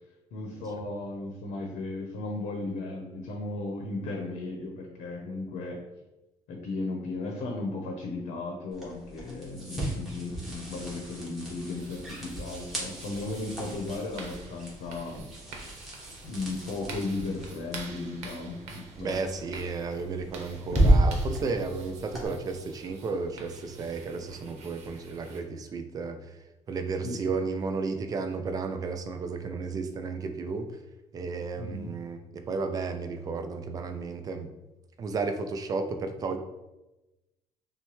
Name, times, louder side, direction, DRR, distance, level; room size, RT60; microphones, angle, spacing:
voice 1, 0.3-5.8 6.5-15.1 16.2-19.2 27.0-27.2 31.6-31.9, left 2 dB, 70° left, 2 dB, 0.7 m, -35 dB
sound 1, 8.7-22.3, right 1 dB, ahead, 1.2 m, -32 dB
sound 2, 11.8-25.4, right 3 dB, 65° right, 0.9 m, -47 dB
voice 2, 19.0-26.4 26.7-30.7 31.1-34.5 35.0-36.4, right 4 dB, 30° right, 7 dB, 0.4 m, -33 dB
6.0 x 2.1 x 3.1 m, 1.0 s
cardioid pair, 155°, 12 cm